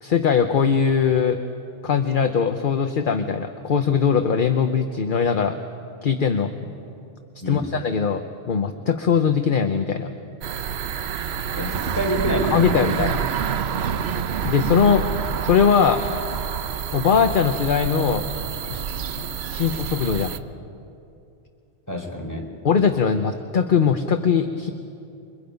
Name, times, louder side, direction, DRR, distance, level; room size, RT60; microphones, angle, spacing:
voice 1, 0.0-1.4 1.8-5.6 6.0-6.5 7.5-8.2 8.5-10.1 12.5-13.2 14.4-15.1 15.4-16.0 16.9-18.2 18.7-18.9 19.2-20.3 22.6-24.7, left 6 dB, 50° left, 7 dB, 1.0 m, -20 dB
sound 1, 10.4-20.4, right 8 dB, 70° right, 1.0 m, -27 dB
voice 2, 11.5-13.0 21.9-22.4, equal, 15° left, 0 dB, 3.9 m, -27 dB
29.0 x 25.0 x 5.3 m, 2.6 s
omnidirectional pair, 1.1 m